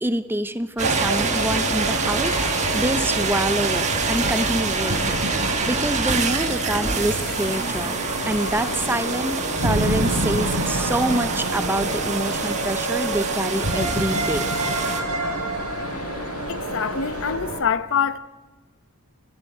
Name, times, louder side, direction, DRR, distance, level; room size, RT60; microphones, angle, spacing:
voice 1, 0.0-5.2 5.6-8.0 8.2-9.3 9.6-14.4, right 1 dB, 10° right, 0.8 m, -26 dB
sound 1, 0.8-17.3, left 3 dB, 85° left, 1.8 m, -35 dB
sound 2, 0.8-15.0, right 5 dB, 35° right, 1.8 m, -27 dB
sound 3, 0.8-17.6, right 2 dB, 85° right, 3.6 m, -28 dB
voice 2, 16.5-18.2, left 7 dB, 60° left, 0.9 m, -25 dB
29.0 x 15.0 x 7.9 m
head